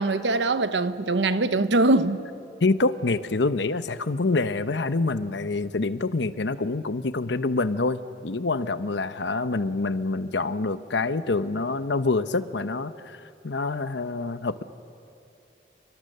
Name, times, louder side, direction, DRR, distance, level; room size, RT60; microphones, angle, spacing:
voice 1, 0.0-2.2, right 2 dB, 85° right, 1.0 m, -22 dB
voice 2, 2.6-13.2 13.4-14.6, left 3 dB, 80° left, 0.9 m, -26 dB
28.5 x 24.5 x 6.7 m
head